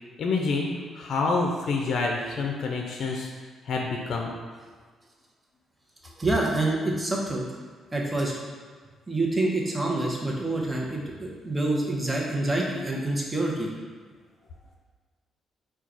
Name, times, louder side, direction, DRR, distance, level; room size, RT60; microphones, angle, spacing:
voice 1, 0.2-0.7 0.9-3.3 3.7-4.3, left 3 dB, 60° left, 1 dB, 0.5 m, -27 dB
voice 2, 6.0-7.5 7.9-8.3 9.1-13.7, right 2 dB, 20° right, -2 dB, 0.8 m, -27 dB
4.5 x 2.3 x 3.8 m, 1.5 s
cardioid pair, 90°, 0 cm